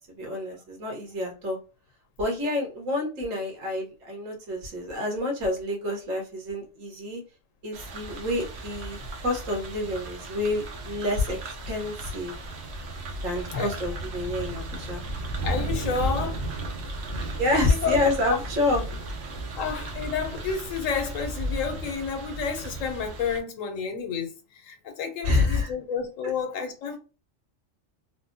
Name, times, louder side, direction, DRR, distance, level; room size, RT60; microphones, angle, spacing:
voice 1, 0.2-1.6 2.2-7.2 7.6-11.4 11.7-12.4 13.2-15.0 17.3-18.8 25.2-25.7, left 2 dB, 85° right, 1.5 m, -28 dB
sound 1, 7.7-23.4, right 1 dB, 60° right, 0.9 m, -35 dB
voice 2, 15.4-16.4 17.2-17.3 17.8-18.0 18.3-18.4 19.6-27.0, left 6 dB, 85° left, 1.1 m, -30 dB
3.4 x 2.1 x 2.7 m
omnidirectional pair, 1.3 m